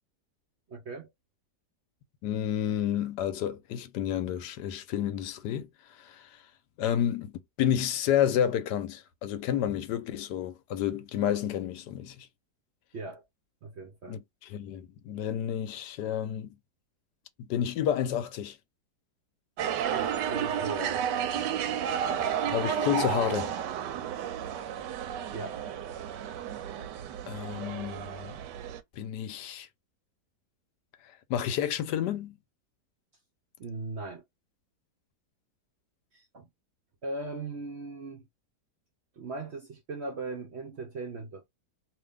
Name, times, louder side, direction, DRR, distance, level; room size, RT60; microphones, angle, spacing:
voice 1, 0.7-1.1 12.9-13.2 13.6-14.2 19.9-21.0 25.3-25.6 33.6-34.2 36.1-36.5 37.0-38.2 39.2-41.4, right 3 dB, 55° right, 0.7 m, -38 dB
voice 2, 2.2-6.4 6.8-7.3 7.6-12.3 14.1-16.6 17.4-18.6 22.5-23.6 26.8-26.9 27.3-28.4 29.0-29.7 31.3-32.4, left 10 dB, 80° left, 1.2 m, -30 dB
sound 1, 19.6-28.8, right 8 dB, 85° right, 1.2 m, -32 dB
2.7 x 2.6 x 3.4 m
omnidirectional pair, 1.8 m